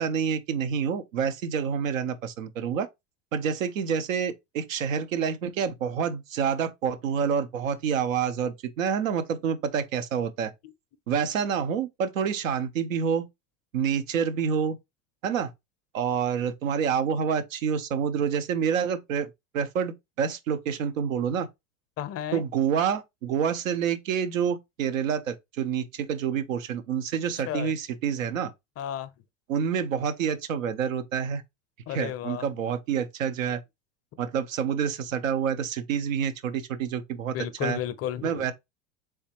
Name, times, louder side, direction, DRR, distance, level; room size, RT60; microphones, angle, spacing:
voice 1, 0.0-2.9 3.3-10.5 11.1-13.3 13.7-14.8 15.2-15.5 15.9-21.5 22.3-28.5 29.5-31.4 31.9-33.6 34.2-37.4 37.6-37.8 38.2-38.5, right 7 dB, 85° right, 0.7 m, -28 dB
voice 2, 22.0-22.4 27.4-27.7 28.8-29.1 31.9-32.5 37.3-38.5, left 11 dB, 40° left, 0.5 m, -33 dB
3.5 x 3.4 x 2.8 m
hypercardioid pair, 90°, 39 cm